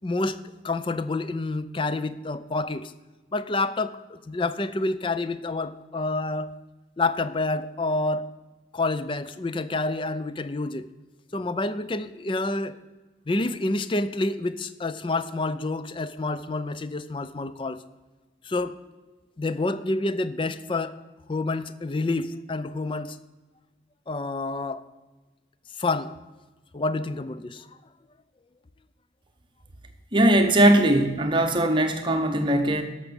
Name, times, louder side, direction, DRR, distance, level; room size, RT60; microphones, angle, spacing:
voice 1, 0.0-2.9 3.3-6.6 7.0-8.3 8.7-10.9 11.3-12.8 13.3-17.8 18.4-18.8 19.4-20.9 21.3-23.2 24.1-24.8 25.8-26.1 26.7-27.7, left 2 dB, 25° left, 14 dB, 0.4 m, -28 dB
voice 2, 30.1-32.8, right 1 dB, 25° right, 5 dB, 0.9 m, -20 dB
13.0 x 5.9 x 6.9 m, 1.2 s
head